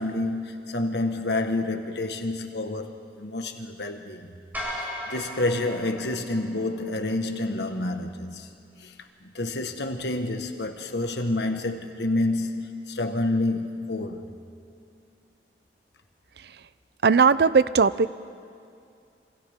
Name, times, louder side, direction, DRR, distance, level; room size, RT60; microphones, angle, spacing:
voice 1, 0.0-4.3 4.8-8.5 8.8-8.9 9.2-14.3, left 2 dB, 80° left, 1.5 m, -28 dB
sound 1, 4.5-6.9, equal, 10° right, 4.4 m, -36 dB
voice 2, 17.0-18.1, right 5 dB, 65° right, 0.5 m, -18 dB
27.0 x 26.5 x 3.7 m
head